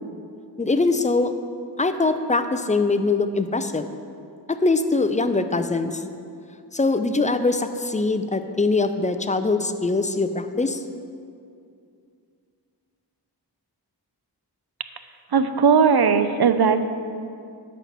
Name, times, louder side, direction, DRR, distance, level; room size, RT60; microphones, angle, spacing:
voice 1, 0.6-1.3 1.8-3.9 4.5-6.0 6.7-10.8, left 3 dB, 20° left, 9 dB, 0.5 m, -22 dB
voice 2, 15.3-16.8, right 6 dB, 65° right, 10 dB, 0.6 m, -18 dB
11.0 x 4.3 x 7.3 m, 2.4 s
wide cardioid pair, 50°, 42 cm